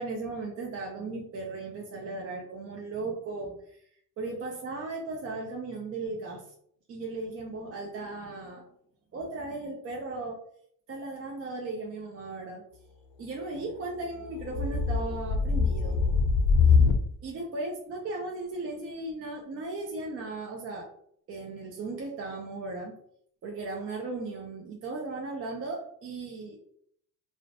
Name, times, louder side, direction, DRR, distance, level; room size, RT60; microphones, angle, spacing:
voice 1, 0.0-3.6 4.2-6.4 6.9-8.6 9.1-10.4 10.9-12.6 13.2-16.0 17.2-20.9 21.3-23.0 23.4-26.6, right 3 dB, 35° right, -1 dB, 0.5 m, -36 dB
sound 1, 14.2-17.1, left 5 dB, 80° left, 0.5 m, -23 dB
2.4 x 2.1 x 2.6 m, 0.66 s
supercardioid pair, 95°, 39 cm